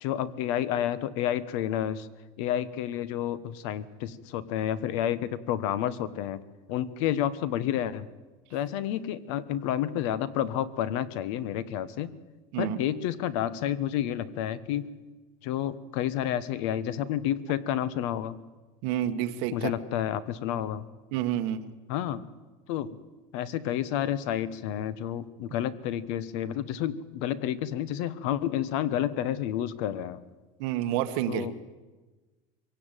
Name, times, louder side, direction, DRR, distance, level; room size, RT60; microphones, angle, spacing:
voice 1, 0.0-2.1 2.4-6.4 6.7-8.1 8.5-12.1 12.6-14.9 15.4-18.3 19.5-20.9 21.9-22.2 22.7-23.0 23.3-30.2 31.3-31.8, left 11 dB, 65° left, 17 dB, 1.3 m, -30 dB
voice 2, 18.8-19.7 21.1-21.6 30.6-31.5, right 11 dB, 60° right, 8 dB, 1.6 m, -29 dB
23.5 x 17.0 x 9.1 m, 1.2 s
cardioid pair, 170°, 17 cm